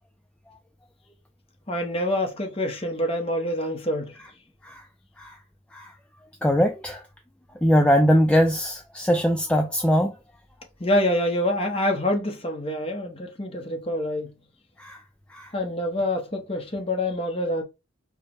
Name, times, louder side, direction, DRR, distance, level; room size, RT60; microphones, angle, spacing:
voice 1, 1.7-4.1 10.8-14.3 15.5-17.6, left 1 dB, 25° left, 0.9 m, -26 dB
voice 2, 6.4-7.0 7.6-10.1 14.8-15.0 15.3-15.5, equal, 5° left, 0.3 m, -21 dB
4.6 x 2.2 x 4.2 m
head